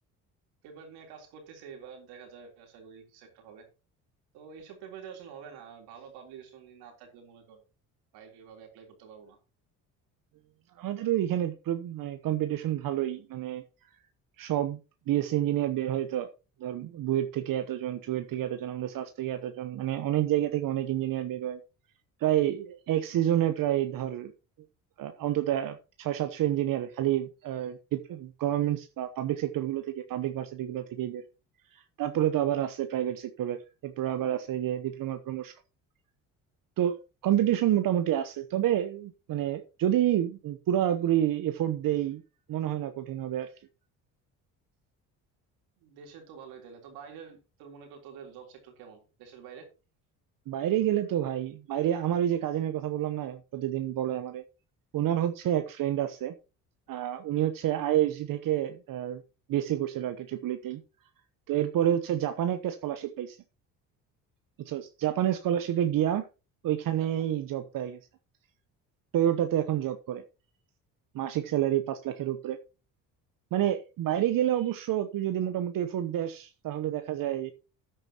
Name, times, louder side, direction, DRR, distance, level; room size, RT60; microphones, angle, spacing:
voice 1, 0.6-3.7 4.3-7.6 8.1-9.4 45.8-49.7, right 7 dB, 85° right, 3.6 m, -48 dB
voice 2, 10.8-13.6 14.4-14.8 15.1-16.3 16.6-21.6 22.2-24.3 25.0-31.2 31.7-33.6 33.8-35.6 36.8-36.9 37.2-42.2 42.5-43.5 50.5-54.4 54.9-56.3 56.9-59.2 59.5-60.8 61.5-63.4 64.6-66.2 66.6-68.0 69.1-70.2 71.1-72.6 73.5-77.5, right 12 dB, 60° right, 1.0 m, -29 dB
13.5 x 8.8 x 2.9 m
supercardioid pair, 75°, 37 cm